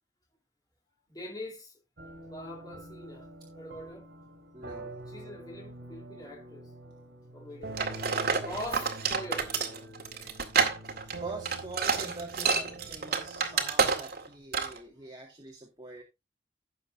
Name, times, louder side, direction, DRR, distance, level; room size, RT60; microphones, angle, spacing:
voice 1, 1.1-3.3 3.5-4.1 5.1-6.7 7.3-8.0 8.3-9.5, left 1 dB, 20° left, 3.4 m, -43 dB
sound 1, 2.0-13.6, right 2 dB, 80° right, 2.9 m, -46 dB
voice 2, 4.5-4.9 10.8-16.0, right 2 dB, 25° right, 2.0 m, -44 dB
sound 2, 7.8-14.3 14.5-14.8, right 5 dB, 60° right, 2.1 m, -29 dB
16.5 x 6.7 x 2.6 m
head